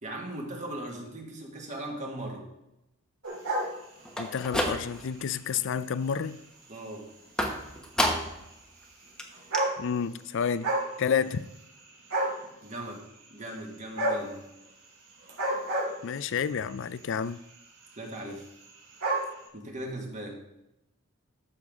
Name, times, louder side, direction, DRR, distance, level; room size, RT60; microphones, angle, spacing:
voice 1, 0.0-2.5 6.7-7.1 12.6-13.0 13.3-14.4 18.0-18.5 19.5-20.4, right 1 dB, 35° right, 1.9 m, -38 dB
sound 1, 3.2-4.4 5.0-5.2 6.1-6.2 6.3-6.4 6.7-6.8 8.0-8.1 9.0-9.1 9.3-10.2 10.5-10.9 11.2-11.8 12.1-12.5 13.9-14.3 15.2-16.4 17.3-17.6 17.8-17.9 18.1-18.2 18.4-19.3, right 1 dB, 80° right, 3.2 m, -29 dB
sound 2, 4.1-5.2 5.6-6.1 7.4-8.5 8.8-8.9 9.2-9.3 9.5-9.6, equal, 5° left, 1.0 m, -30 dB
voice 2, 4.2-6.4 9.8-10.7 11.0-11.4 16.0-17.4, left 7 dB, 60° left, 0.4 m, -30 dB
13.0 x 6.7 x 3.7 m
head